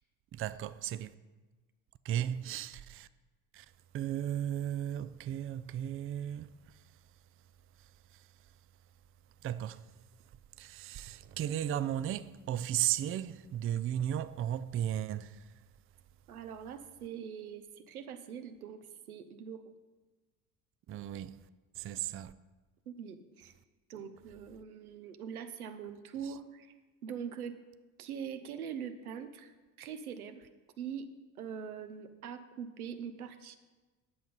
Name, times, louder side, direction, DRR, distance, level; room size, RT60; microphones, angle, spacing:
voice 1, 0.3-1.2 2.0-3.1 3.5-3.7 3.9-6.8 7.8-8.3 9.4-9.9 10.6-15.5 20.9-21.4 21.8-22.3, right 11 dB, 30° right, 0.5 m, -35 dB
voice 2, 16.3-19.7 22.9-23.5 23.9-26.7 27.0-27.6 28.0-30.5 30.8-31.1 31.4-33.6, right 7 dB, 80° right, 1.0 m, -43 dB
10.0 x 7.9 x 5.5 m
hypercardioid pair, 60°, 43 cm